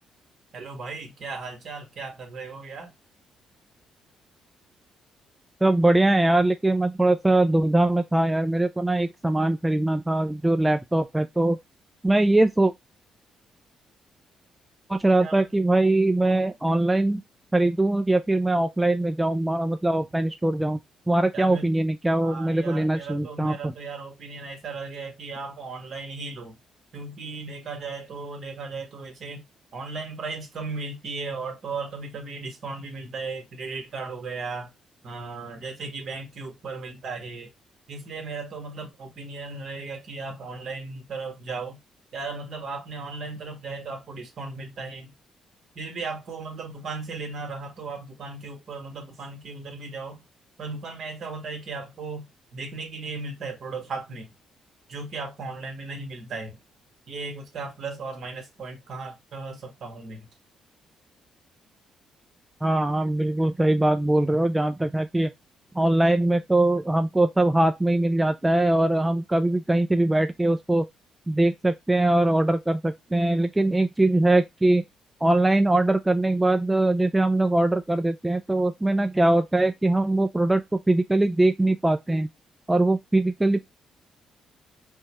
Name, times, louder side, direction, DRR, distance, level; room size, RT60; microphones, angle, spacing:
voice 1, 0.5-2.9 15.2-15.5 21.3-21.7 22.2-26.6 26.9-29.4 29.7-34.7 35.0-37.5 37.9-41.8 42.1-45.1 45.7-50.2 50.6-52.2 52.5-54.3 54.9-56.6 57.1-60.3, right 4 dB, 60° right, 1.6 m, -36 dB
voice 2, 5.6-11.6 12.0-12.7 14.9-17.2 17.5-20.8 21.1-23.7 62.6-65.3 65.7-70.9 71.3-74.8 75.2-82.3 82.7-83.6, right 2 dB, 10° right, 0.4 m, -22 dB
4.5 x 2.3 x 3.1 m
cardioid pair, 90°, 0 cm